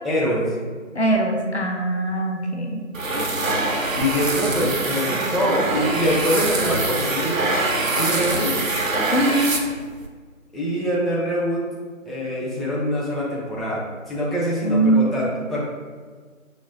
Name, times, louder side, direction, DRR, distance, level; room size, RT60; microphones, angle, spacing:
voice 1, 0.0-0.5 3.9-7.5 7.9-8.5 10.5-11.6 12.1-15.6, equal, ahead, -7 dB, 0.4 m, -24 dB
voice 2, 1.0-2.8 5.1-5.2 9.1-9.6 14.6-15.1, right 1 dB, 60° left, 0 dB, 0.5 m, -21 dB
sound 1, 2.9-10.1, right 2 dB, 75° right, 0.7 m, -24 dB
5.8 x 2.0 x 2.5 m, 1.5 s
figure-of-eight pair, 175°, 40 cm